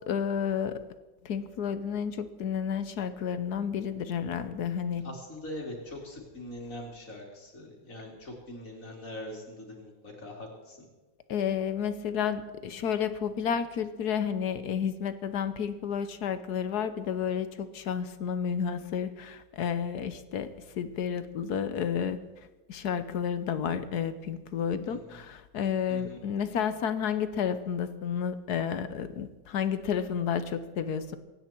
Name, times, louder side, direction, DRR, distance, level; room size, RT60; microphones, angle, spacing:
voice 1, 0.1-0.8 1.2-5.1 11.3-22.2 22.7-31.2, left 7 dB, 65° left, 12 dB, 1.3 m, -31 dB
voice 2, 5.0-10.9 24.9-25.2 25.9-26.2, left 1 dB, 45° left, -1 dB, 3.7 m, -42 dB
24.5 x 9.9 x 4.5 m, 1.2 s
omnidirectional pair, 2.0 m